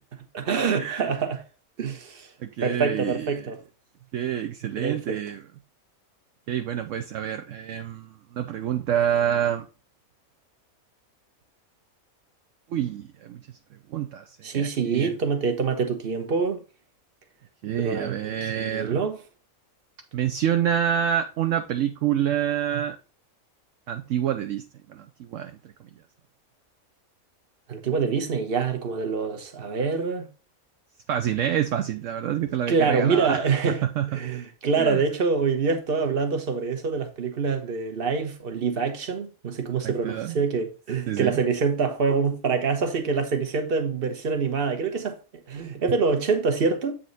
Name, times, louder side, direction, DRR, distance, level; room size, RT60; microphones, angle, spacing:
voice 1, 0.3-1.4 1.8-2.3 2.6-3.6 4.8-5.2 14.4-16.6 17.8-19.2 27.7-30.3 32.7-33.8 34.1-45.2 45.5-46.9, right 5 dB, 45° right, 1.2 m, -25 dB
voice 2, 2.4-3.5 4.1-5.4 6.5-9.7 12.7-13.4 13.9-15.1 17.6-19.0 20.1-23.0 23.9-25.6 31.1-34.3 34.8-35.0 39.8-40.4 41.1-41.4, right 10 dB, 65° right, 0.9 m, -27 dB
7.9 x 4.2 x 4.0 m
omnidirectional pair, 1.5 m